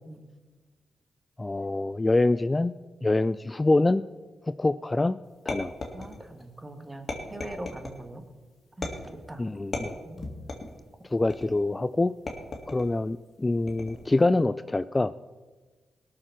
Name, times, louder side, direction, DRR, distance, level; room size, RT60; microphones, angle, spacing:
voice 1, 1.4-2.7 3.0-4.0 4.4-5.2 5.5-5.7 9.4-9.9 11.1-12.1 12.7-15.1, left 2 dB, 25° left, 14 dB, 0.3 m, -25 dB
sound 1, 5.5-6.4 7.1-8.0 8.8-9.3 9.7-10.8 11.3-11.7 12.3-12.9 13.7-14.1, left 2 dB, 50° left, 2.3 m, -36 dB
voice 2, 5.9-8.2 8.8-8.9 9.3-9.6 10.0-10.3, right 1 dB, 25° right, 7 dB, 1.7 m, -41 dB
17.5 x 6.8 x 5.9 m, 1.3 s
supercardioid pair, 55°, 0 cm